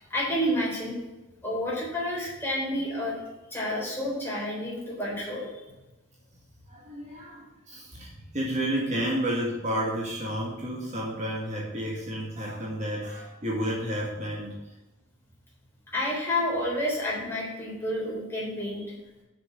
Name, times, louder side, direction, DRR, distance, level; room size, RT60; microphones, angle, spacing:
voice 1, 0.1-1.0 1.4-3.2 3.5-5.5 15.9-19.0, left 1 dB, 10° left, -5 dB, 3.7 m, -29 dB
voice 2, 6.7-14.7, right 1 dB, 35° right, -4 dB, 1.9 m, -31 dB
6.7 x 6.5 x 7.7 m, 1.1 s
head